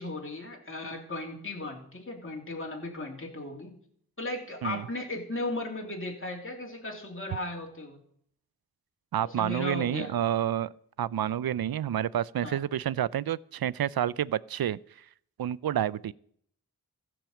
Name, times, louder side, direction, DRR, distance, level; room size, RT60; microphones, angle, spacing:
voice 1, 0.0-3.7 4.2-8.0 9.2-10.1 12.4-12.6, left 2 dB, 35° left, 0 dB, 2.9 m, -36 dB
voice 2, 9.1-10.7 11.0-14.8 15.4-16.1, right 10 dB, 70° right, 21 dB, 0.5 m, -29 dB
15.0 x 6.2 x 7.2 m, 0.65 s
cardioid pair, 45°, 37 cm